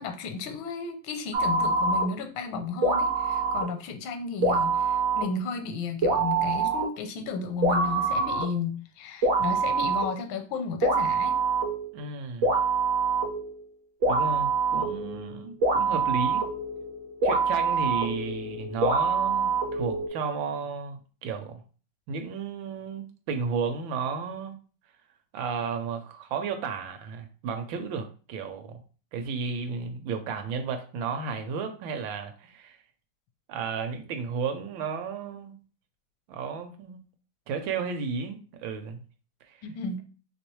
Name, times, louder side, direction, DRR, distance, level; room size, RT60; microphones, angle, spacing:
voice 1, 0.0-11.3 39.6-40.0, left 4 dB, 80° left, 6 dB, 1.4 m, -33 dB
sound 1, 1.3-2.1 2.8-3.7 4.4-5.3 6.0-6.9 7.6-8.5 9.2-10.1 10.8-12.0 12.4-13.6 14.0-20.1, right 3 dB, 60° right, 0.7 m, -25 dB
voice 2, 11.9-12.5 14.1-16.4 17.2-21.6 22.1-24.6 25.3-28.8 29.1-32.8 33.5-35.6 36.3-37.0 37.5-39.0 39.5-39.6, right 5 dB, 75° right, 6 dB, 1.3 m, -33 dB
3.2 x 3.0 x 3.0 m, 0.38 s
omnidirectional pair, 2.2 m